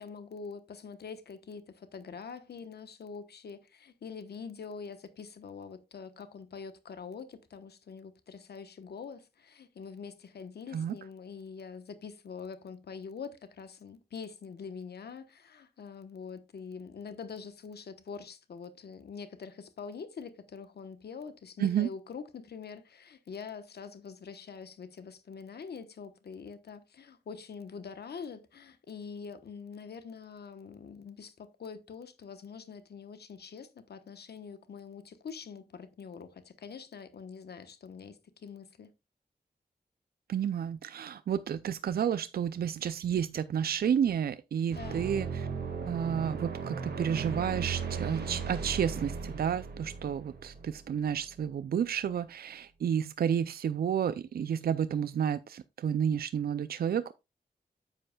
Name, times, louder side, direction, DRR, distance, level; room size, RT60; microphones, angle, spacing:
voice 1, 0.0-38.9 44.7-45.1, left 6 dB, 90° left, 1.0 m, -45 dB
voice 2, 40.3-45.5 45.9-57.1, right 8 dB, 70° right, 0.4 m, -31 dB
sound 1, 44.7-51.4, right 5 dB, 85° right, 1.8 m, -37 dB
9.9 x 7.7 x 2.3 m
wide cardioid pair, 80°, 16 cm